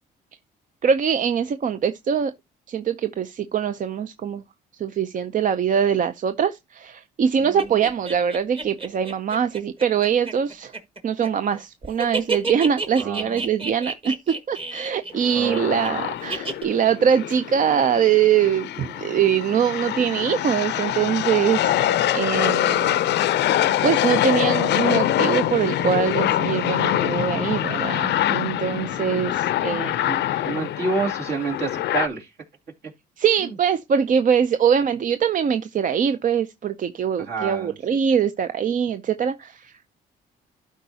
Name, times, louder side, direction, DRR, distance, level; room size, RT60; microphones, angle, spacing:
voice 1, 0.8-2.3 2.7-4.4 4.7-10.7 11.0-23.2 23.8-30.5 33.2-39.9, right 8 dB, 45° right, 0.5 m, -23 dB
sound 1, 7.6-11.6 11.8-15.9 16.3-16.6, right 3 dB, 30° right, 1.5 m, -30 dB
voice 2, 13.0-13.4 15.3-16.0 30.0-32.3 33.4-33.5 37.2-37.7, right 4 dB, 65° right, 2.5 m, -29 dB
sound 2, 15.1-32.1, left 12 dB, 70° left, 0.5 m, -24 dB
12.0 x 4.7 x 2.7 m
cardioid pair, 80°, 18 cm